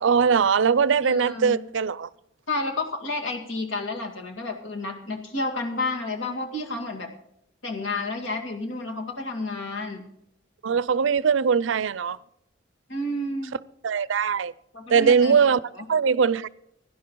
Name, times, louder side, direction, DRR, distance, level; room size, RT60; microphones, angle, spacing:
voice 1, 0.0-2.1 10.6-12.2 13.8-14.5 14.9-15.6 15.9-16.5, right 6 dB, 80° right, 0.4 m, -21 dB
voice 2, 1.0-1.6 2.5-7.1 7.6-10.0 12.9-13.5 14.7-15.4 15.7-15.9, left 2 dB, 80° left, 2.4 m, -30 dB
17.0 x 11.0 x 3.8 m
head